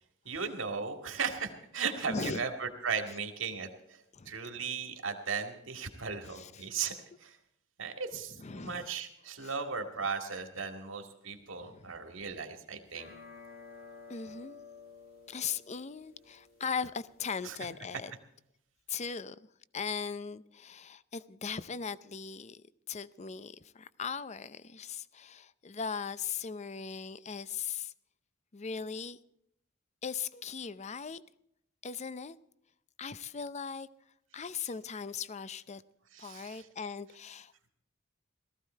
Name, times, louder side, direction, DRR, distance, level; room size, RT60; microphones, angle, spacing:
voice 1, 0.3-6.9 7.2-7.4 7.8-13.1 17.4-17.6 36.1-36.7, right 5 dB, 70° right, 2.1 m, -37 dB
voice 2, 2.1-2.4 4.1-4.3 6.3-6.7 8.4-8.9 9.4-9.5 11.6-11.9 14.1-14.6 15.3-18.1 18.9-19.4 19.7-27.9 28.5-29.2 30.0-31.2 31.8-32.4 33.0-33.9 34.3-35.8 36.2-37.7, left 6 dB, 35° left, 0.5 m, -39 dB
sound 1, 12.9-17.9, left 5 dB, 50° left, 1.8 m, -53 dB
18.0 x 14.5 x 4.5 m
head